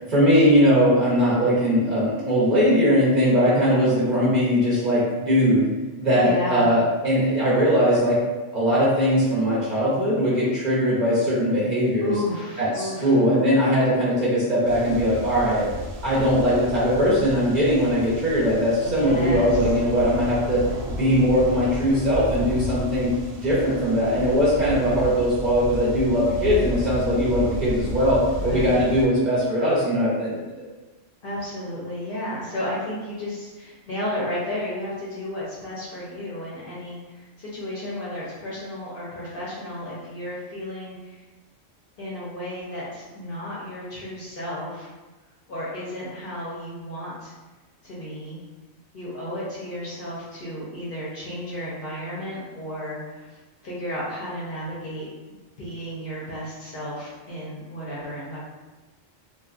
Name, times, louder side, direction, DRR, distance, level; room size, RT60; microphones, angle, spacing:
voice 1, 0.1-5.7 6.0-8.2 8.5-12.1 12.6-15.6 16.0-20.6 20.9-23.1 23.4-30.4, equal, 45° right, -8 dB, 0.6 m, -20 dB
voice 2, 6.2-6.7 12.0-13.2 18.8-19.7 28.3-28.9 31.2-41.2 42.0-44.9 45.5-47.3 47.8-48.4 48.9-53.3 53.6-55.1 55.6-58.4, left 1 dB, 55° left, -7 dB, 0.7 m, -33 dB
sound 1, 14.7-29.1, equal, 90° right, 1.0 m, -33 dB
2.7 x 2.2 x 2.4 m, 1.2 s
omnidirectional pair, 1.3 m